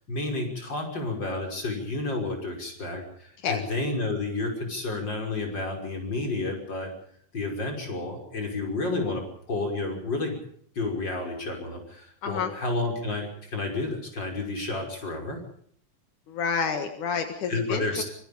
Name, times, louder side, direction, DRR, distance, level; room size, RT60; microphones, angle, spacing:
voice 1, 0.1-6.9 7.3-10.4 10.8-15.4 17.5-18.0, left 2 dB, 35° left, 3 dB, 6.5 m, -31 dB
voice 2, 16.3-18.0, left 6 dB, 80° left, 7 dB, 3.2 m, -29 dB
25.0 x 23.5 x 5.3 m, 0.63 s
omnidirectional pair, 3.5 m